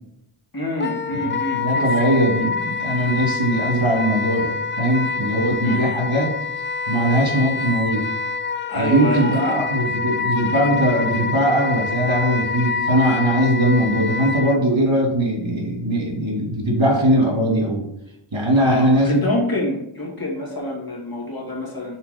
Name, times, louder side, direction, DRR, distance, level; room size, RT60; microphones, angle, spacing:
voice 1, 0.5-1.9 5.6-5.9 8.7-9.6 18.5-22.0, left 1 dB, 45° left, -2 dB, 2.2 m, -26 dB
Wind instrument woodwind instrument, 0.8-14.6, left 4 dB, 25° left, 0.4 m, -26 dB
voice 2, 1.1-6.3 6.9-8.0 8.7-17.8 18.3-19.2, right 1 dB, 65° right, -1 dB, 2.5 m, -20 dB
5.8 x 4.3 x 5.2 m, 0.78 s
wide cardioid pair, 45°, 48 cm